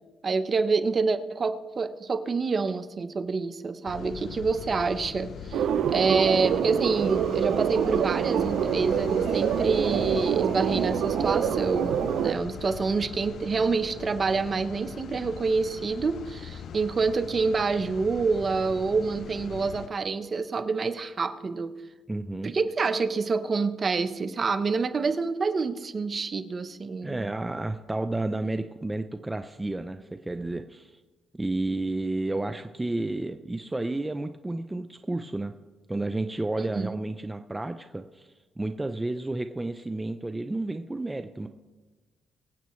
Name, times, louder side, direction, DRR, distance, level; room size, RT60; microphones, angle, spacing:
voice 1, 0.2-5.6 5.9-21.8 22.4-27.3 36.6-37.0, right 4 dB, 40° right, 10 dB, 0.9 m, -27 dB
sound 1, 3.8-19.9, left 7 dB, 65° left, 0.6 m, -40 dB
sound 2, 5.5-12.3, right 9 dB, 75° right, 0.5 m, -26 dB
voice 2, 22.1-22.5 27.0-31.0 31.3-35.5 35.9-41.5, right 2 dB, 15° right, 8 dB, 0.5 m, -31 dB
24.0 x 8.1 x 3.2 m, 1.2 s
cardioid pair, 90°, 0 cm